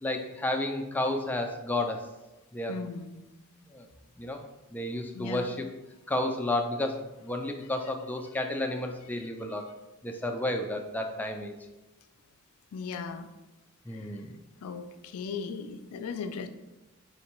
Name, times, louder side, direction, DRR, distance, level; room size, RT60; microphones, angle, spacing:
voice 1, 0.0-2.0 2.5-2.7 3.7-3.9 4.2-4.4 4.7-5.7 6.1-9.6 10.0-11.6 13.9-14.4, left 1 dB, 10° left, 3 dB, 0.3 m, -31 dB
voice 2, 2.7-3.2 5.1-5.5 12.7-13.3 13.9-14.1 14.6-16.5, left 5 dB, 85° left, 9 dB, 0.4 m, -37 dB
4.3 x 3.2 x 3.0 m, 1.0 s
head